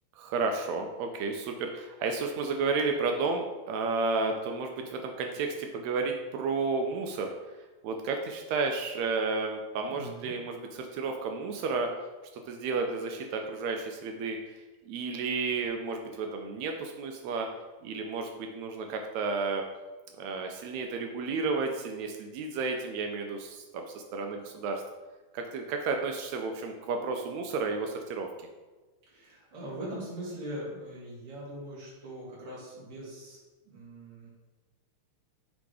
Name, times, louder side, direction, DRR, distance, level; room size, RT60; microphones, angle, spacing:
voice 1, 0.2-7.3 7.8-11.9 12.5-17.5 17.8-19.6 20.2-24.8 25.3-28.3, right 4 dB, 80° right, 4 dB, 1.8 m, -32 dB
voice 2, 9.9-10.3 29.1-33.4 33.6-34.3, right 1 dB, 50° right, -6 dB, 2.8 m, -41 dB
6.1 x 3.7 x 4.7 m, 1.2 s
omnidirectional pair, 3.4 m